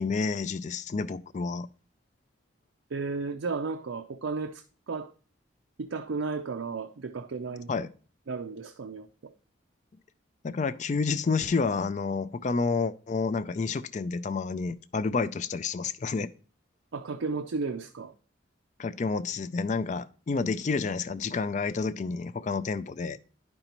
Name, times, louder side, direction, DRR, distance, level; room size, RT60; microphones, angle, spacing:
voice 1, 0.0-1.7 7.7-7.9 10.4-16.3 18.8-23.2, left 4 dB, 35° left, 0.3 m, -29 dB
voice 2, 2.9-5.1 5.8-7.7 8.3-9.3 16.9-18.1, right 4 dB, 80° right, 0.5 m, -34 dB
10.5 x 5.3 x 2.9 m
head